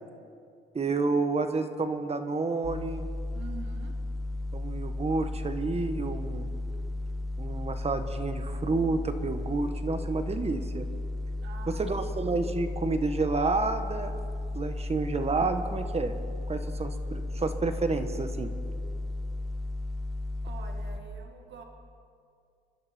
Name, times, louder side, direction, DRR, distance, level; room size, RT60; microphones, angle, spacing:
voice 1, 0.7-3.1 4.5-6.5 7.4-10.8 11.8-14.1 14.5-16.1 16.5-18.5, right 3 dB, 30° right, 8 dB, 1.4 m, -30 dB
sound 1, 2.6-21.0, left 2 dB, ahead, 1.6 m, -34 dB
voice 2, 3.3-4.0 11.4-12.1 20.4-21.6, right 5 dB, 65° right, 3 dB, 1.9 m, -46 dB
26.5 x 12.5 x 4.4 m, 2.3 s
cardioid pair, 90°, 20 cm